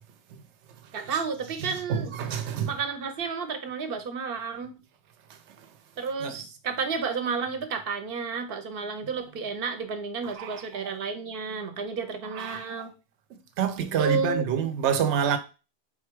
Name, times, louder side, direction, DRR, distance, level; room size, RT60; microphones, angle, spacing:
voice 1, 0.9-2.1 2.7-4.7 6.0-12.9 14.0-14.4, right 5 dB, 60° right, 0.8 m, -31 dB
voice 2, 1.6-2.7 6.2-6.4 10.2-10.9 12.3-12.6 13.3-15.4, right 8 dB, 85° right, 0.9 m, -28 dB
4.1 x 2.3 x 4.4 m
omnidirectional pair, 1.2 m